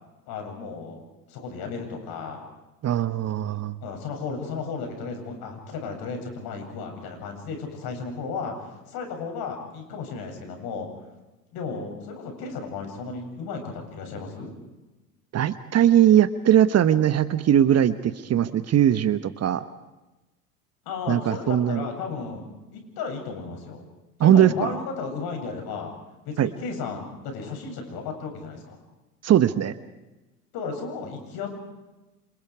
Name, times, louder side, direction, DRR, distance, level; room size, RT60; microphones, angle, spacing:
voice 1, 0.3-2.5 3.8-10.9 11.5-14.5 20.9-22.5 22.7-23.9 24.2-25.9 26.2-28.8 30.5-31.5, left 5 dB, 50° left, 4 dB, 7.7 m, -34 dB
voice 2, 2.8-3.7 15.3-19.6 21.1-21.8 24.2-24.7 26.4-26.5 29.2-29.7, right 10 dB, 35° right, 13 dB, 1.2 m, -20 dB
29.5 x 26.5 x 4.9 m, 1.1 s
hypercardioid pair, 75°, 46 cm